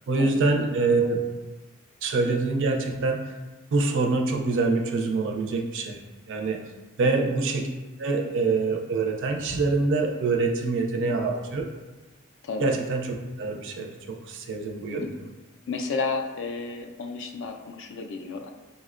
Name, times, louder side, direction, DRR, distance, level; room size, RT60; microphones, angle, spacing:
voice 1, 0.1-1.5 2.0-3.3 3.7-6.0 6.3-6.6 7.0-7.7 8.0-11.6 12.6-13.1 13.4-15.1, right 3 dB, 60° right, 2 dB, 0.4 m, -25 dB
voice 2, 15.7-18.5, left 4 dB, 60° left, 4 dB, 0.4 m, -32 dB
5.1 x 2.1 x 2.4 m, 1.2 s
head